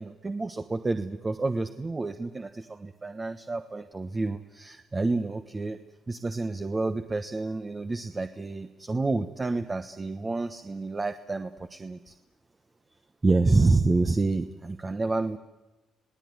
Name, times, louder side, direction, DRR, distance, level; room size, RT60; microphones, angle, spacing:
voice 1, 0.0-5.8 6.1-12.1 13.2-15.4, right 3 dB, 25° right, 8 dB, 1.1 m, -28 dB
27.5 x 18.0 x 9.6 m, 1.1 s
cardioid pair, 90°, 0 cm